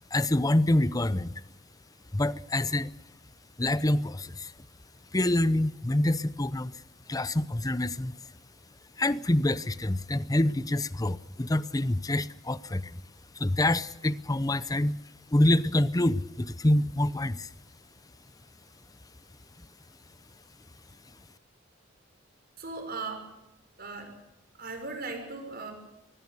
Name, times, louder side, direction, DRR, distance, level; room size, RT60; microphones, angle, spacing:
voice 1, 0.1-1.4 2.1-2.9 3.6-4.5 5.1-6.8 7.1-8.2 9.0-13.0 13.4-15.0 15.3-17.5, left 1 dB, 20° left, 0.7 m, -26 dB
voice 2, 22.6-23.2 23.8-24.1 24.6-25.7, right 3 dB, 50° right, 6.3 m, -37 dB
24.0 x 20.5 x 6.8 m
head